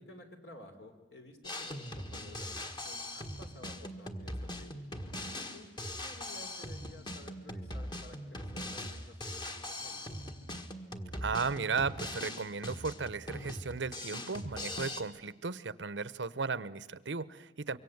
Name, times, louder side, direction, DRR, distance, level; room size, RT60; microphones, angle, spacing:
voice 1, 0.0-4.9 5.5-5.7 6.0-10.3 17.7-17.8, left 1 dB, 65° left, 5 dB, 3.6 m, -53 dB
Drum kit, 1.4-15.0, left 1 dB, 25° left, 1.6 m, -41 dB
voice 2, 11.2-17.8, right 4 dB, 85° right, 17 dB, 0.8 m, -35 dB
25.5 x 23.5 x 7.9 m, 1.2 s
head